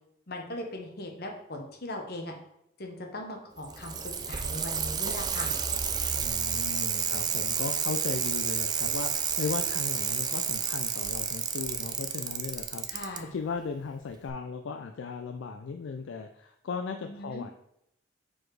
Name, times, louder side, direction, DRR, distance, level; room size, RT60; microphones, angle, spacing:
voice 1, 0.3-2.3 2.8-5.5 12.9-13.3 17.0-17.4, left 1 dB, 50° left, 2 dB, 1.0 m, -39 dB
Bicycle, 3.6-13.2 14.3-14.4, right 7 dB, 20° right, 0.3 m, -30 dB
voice 2, 6.1-12.9 13.2-17.5, left 5 dB, 70° left, 5 dB, 0.4 m, -37 dB
4.7 x 4.2 x 4.7 m, 0.77 s
head